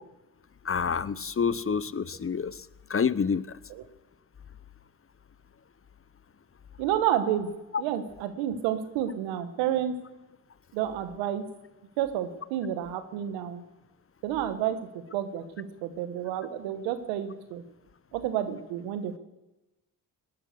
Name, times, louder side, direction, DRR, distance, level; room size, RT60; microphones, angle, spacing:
voice 1, 0.6-2.5 2.9-3.5, left 6 dB, 30° left, 18 dB, 0.8 m, -27 dB
voice 2, 6.8-9.9 10.7-11.4 12.0-13.6 14.2-14.8 15.1-17.6 18.1-19.2, right 10 dB, 90° right, 10 dB, 1.4 m, -30 dB
19.0 x 11.0 x 6.7 m, 1.0 s
hypercardioid pair, 45°, 44 cm